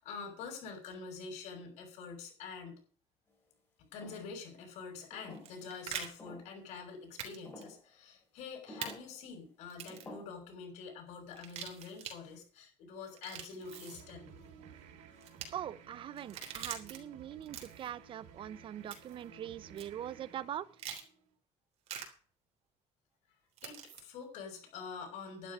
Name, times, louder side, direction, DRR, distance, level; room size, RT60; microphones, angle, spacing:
voice 1, 0.0-2.8 3.8-14.3 23.6-25.5, left 5 dB, 85° left, 6.3 m, -46 dB
sound 1, 4.0-4.4 5.1-5.7 6.2-6.6 7.4-7.8 8.7-9.1 9.9-10.2, left 1 dB, 20° left, 5.3 m, -50 dB
sound 2, 5.3-6.1 7.2-7.4 7.6-7.7 8.8-8.9 9.7-10.1 11.3-12.2 13.1-14.0 15.2-15.5 16.2-17.0 17.4-17.9 18.9-19.2 19.8-19.9 20.8-21.0 21.9-22.1 23.6-24.0, right 8 dB, 60° right, 3.4 m, -43 dB
sound 3, 13.6-21.3, right 6 dB, 85° right, 2.5 m, -56 dB
voice 2, 15.5-20.7, right 10 dB, 45° right, 0.6 m, -42 dB
11.5 x 11.5 x 5.4 m
cardioid pair, 140°, 12 cm